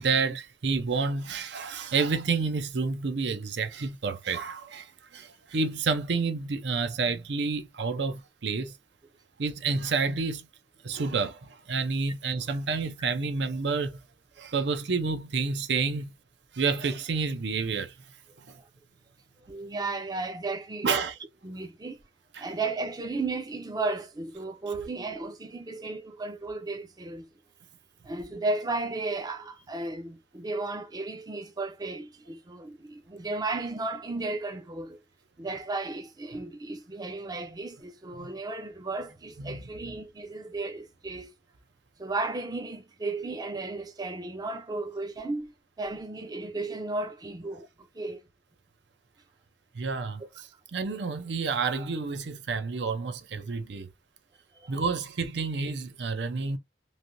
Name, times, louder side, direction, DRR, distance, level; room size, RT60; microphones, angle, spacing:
voice 1, 0.0-8.7 9.4-10.5 10.8-14.0 14.4-16.1 16.5-17.9 18.5-18.6 20.8-21.1 22.3-22.4 38.1-38.3 39.4-39.6 49.7-50.2 50.7-53.9 54.7-56.6, right 4 dB, 70° right, 0.6 m, -29 dB
voice 2, 19.5-21.1 21.4-22.0 22.4-27.3 28.0-35.0 35.4-41.3 42.0-48.2 54.5-54.8, right 3 dB, 20° right, 0.5 m, -34 dB
3.2 x 2.6 x 2.6 m
head